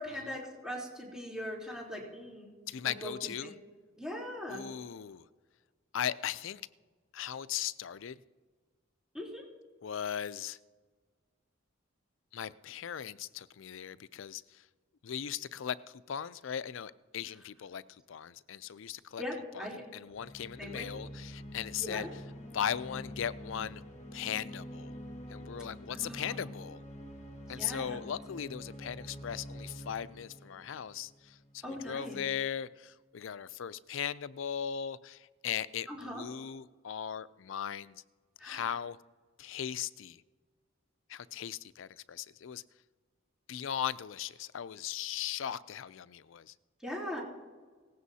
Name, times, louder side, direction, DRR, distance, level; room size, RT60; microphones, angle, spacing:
voice 1, 0.0-2.5 2.8-3.1 3.4-3.5 4.0-4.6 9.1-9.4 19.2-19.8 20.6-20.9 21.8-22.1 25.9-26.4 27.5-28.0 31.6-32.2 35.9-36.2 38.4-38.7 46.8-47.2, left 1 dB, 5° right, -5 dB, 3.4 m, -40 dB
voice 2, 2.7-3.5 4.5-5.2 5.9-6.6 7.1-8.2 9.8-10.6 12.3-14.4 15.0-15.8 16.1-17.8 18.1-19.2 19.5-19.7 19.9-22.1 22.5-23.8 24.1-25.0 25.3-26.8 27.5-31.1 31.5-38.0 38.4-39.0 39.4-40.2 41.1-42.6 43.5-46.5, left 9 dB, 65° left, 16 dB, 0.4 m, -38 dB
sound 1, 20.1-31.6, equal, 35° left, 1.6 m, -47 dB
18.5 x 16.0 x 2.8 m, 1.5 s
head